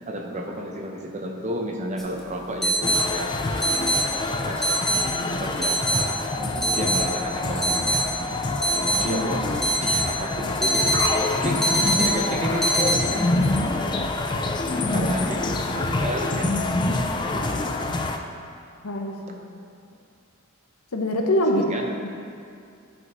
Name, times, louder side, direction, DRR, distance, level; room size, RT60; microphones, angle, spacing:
voice 1, 0.1-3.3 4.4-8.4 9.0-10.8 11.4-11.7 12.0-14.1 14.9-17.8 21.5-22.1, right 1 dB, 35° right, 2 dB, 0.7 m, -33 dB
sound 1, 2.0-2.1 2.6-3.0 3.6-4.0 4.6-5.0 5.6-6.0 6.6-7.0 7.6-8.0 8.6-9.0 9.6-10.0 10.6-11.2 11.6-12.1 12.6-12.9, right 2 dB, ahead, 0.8 m, -22 dB
sound 2, 2.8-18.2, left 2 dB, 20° left, 0.3 m, -26 dB
voice 2, 18.8-19.4 20.9-21.7 22.0-22.1, left 1 dB, 85° left, 2 dB, 0.8 m, -24 dB
11.0 x 5.3 x 3.0 m, 2.4 s
head